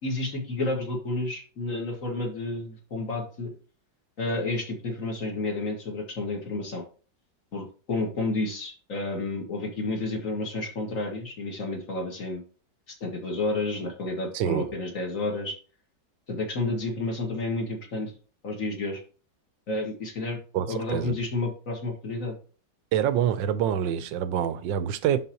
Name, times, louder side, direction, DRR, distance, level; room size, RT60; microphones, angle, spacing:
voice 1, 0.0-3.5 4.2-6.8 7.5-12.4 13.0-15.6 16.3-18.1 18.4-19.0 19.7-20.4 20.7-22.4, left 2 dB, 45° left, 2.0 m, -30 dB
voice 2, 14.3-14.7 20.5-21.1 22.9-25.2, right 9 dB, 85° right, 1.4 m, -26 dB
10.5 x 4.0 x 2.8 m
omnidirectional pair, 2.0 m